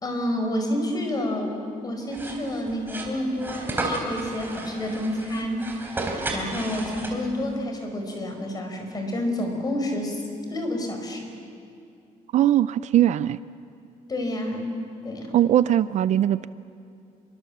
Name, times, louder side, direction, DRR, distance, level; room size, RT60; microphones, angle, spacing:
voice 1, 0.0-1.6 1.8-5.7 6.3-10.2 10.5-11.2 14.1-14.8 15.0-15.4, left 1 dB, 25° left, 3 dB, 4.8 m, -29 dB
sound 1, 2.1-7.5, right 2 dB, 15° right, 3.7 m, -32 dB
voice 2, 12.3-13.4 15.3-16.5, right 11 dB, 55° right, 15 dB, 0.5 m, -20 dB
27.5 x 23.5 x 7.3 m, 2.4 s
cardioid pair, 145°, 14 cm